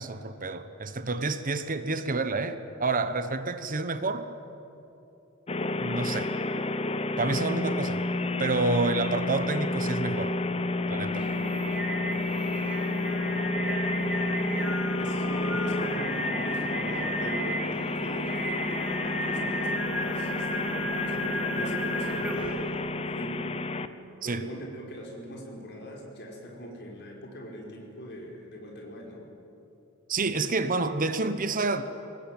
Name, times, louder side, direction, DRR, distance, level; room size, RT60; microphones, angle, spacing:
voice 1, 0.0-4.3 5.8-6.3 7.2-8.0 8.4-10.4 10.9-11.3 24.2-24.5 30.1-31.8, right 3 dB, 40° right, 10 dB, 1.1 m, -29 dB
sound 1, 5.5-23.9, left 2 dB, 30° left, 0.9 m, -30 dB
Singing, 10.9-22.7, right 1 dB, 5° right, 3.2 m, -34 dB
voice 2, 15.0-23.5 24.2-29.3, equal, 50° left, 0 dB, 5.0 m, -41 dB
24.5 x 20.0 x 9.1 m, 2.9 s
head